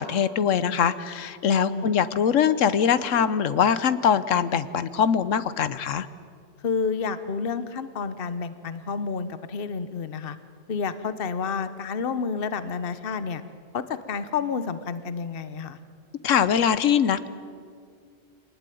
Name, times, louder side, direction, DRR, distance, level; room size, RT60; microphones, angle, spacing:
voice 1, 0.0-6.1 16.2-17.3, left 8 dB, 90° left, 14 dB, 1.2 m, -22 dB
voice 2, 1.5-1.9 6.6-10.4 10.7-13.4 13.7-15.8, left 5 dB, 50° left, 12 dB, 1.1 m, -30 dB
25.0 x 19.5 x 9.2 m, 2.2 s
omnidirectional pair, 1.3 m